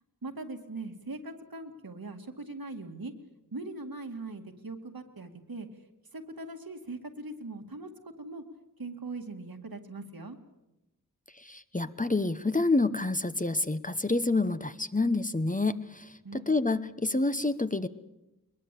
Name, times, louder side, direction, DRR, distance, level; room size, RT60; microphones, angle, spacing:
voice 1, 0.2-3.1 3.5-5.7 6.1-7.9 8.2-8.4 8.8-10.4 16.2-16.5, right 2 dB, 75° right, 5 dB, 2.2 m, -40 dB
voice 2, 11.3-17.9, left 2 dB, 20° left, 11 dB, 0.9 m, -28 dB
21.5 x 21.5 x 8.4 m, 0.97 s
wide cardioid pair, 45°, 36 cm